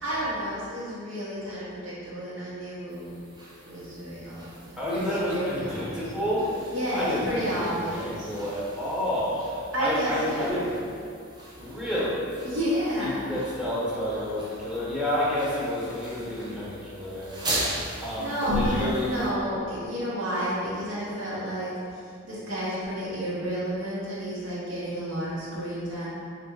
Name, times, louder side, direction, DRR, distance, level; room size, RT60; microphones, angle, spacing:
voice 1, 0.0-3.1 3.6-6.0 6.7-8.3 9.7-10.7 12.4-13.3 18.2-26.1, equal, 65° right, -8 dB, 0.9 m, -31 dB
sound 1, 2.9-19.3, right 1 dB, 20° right, 0.6 m, -40 dB
voice 2, 4.8-10.7 11.6-12.3 13.0-19.1, left 1 dB, 5° right, -9 dB, 1.0 m, -30 dB
3.4 x 2.6 x 4.5 m, 2.4 s
head